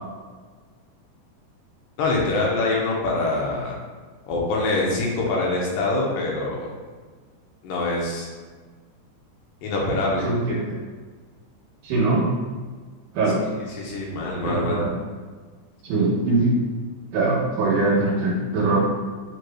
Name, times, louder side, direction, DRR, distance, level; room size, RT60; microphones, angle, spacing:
voice 1, 2.0-3.8 4.3-6.7 7.6-8.3 9.6-10.3 13.6-14.8, left 2 dB, 80° left, -3 dB, 2.4 m, -24 dB
voice 2, 10.2-10.6 11.8-12.3 13.1-13.4 14.4-14.9 15.8-16.6 17.1-18.8, right 2 dB, 75° right, -4 dB, 2.1 m, -21 dB
7.6 x 3.1 x 2.2 m, 1.5 s
omnidirectional pair, 4.0 m